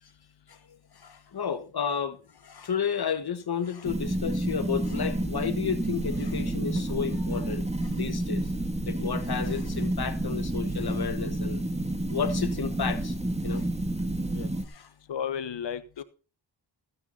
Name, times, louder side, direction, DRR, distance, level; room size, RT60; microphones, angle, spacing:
voice 1, 0.9-8.5 8.8-11.6 12.1-13.2 13.4-13.7 14.6-14.9, left 7 dB, 60° left, 1.5 m, -32 dB
sound 1, 3.8-14.7, right 1 dB, 15° right, 2.4 m, -30 dB
voice 2, 15.1-16.0, left 8 dB, 75° left, 1.4 m, -33 dB
15.0 x 9.5 x 4.1 m
cardioid pair, 60°, 44 cm